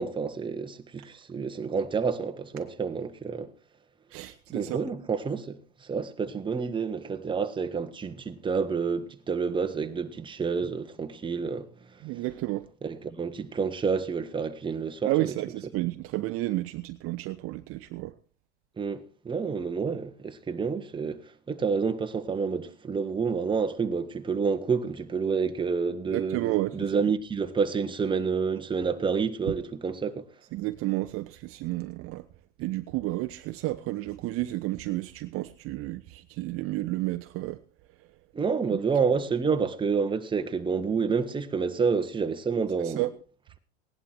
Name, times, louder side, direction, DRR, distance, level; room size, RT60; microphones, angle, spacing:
voice 1, 0.0-3.5 4.5-11.7 12.8-15.3 18.8-21.2 21.5-26.4 26.7-30.3 38.3-43.0, right 5 dB, 15° right, 1.3 m, -29 dB
voice 2, 4.1-4.9 12.0-12.7 15.0-18.1 26.1-27.0 30.5-32.3 32.6-37.6 38.0-38.1 38.7-38.8 42.8-43.2, right 18 dB, 40° right, 0.8 m, -31 dB
17.5 x 11.0 x 4.5 m
hypercardioid pair, 115°, 34 cm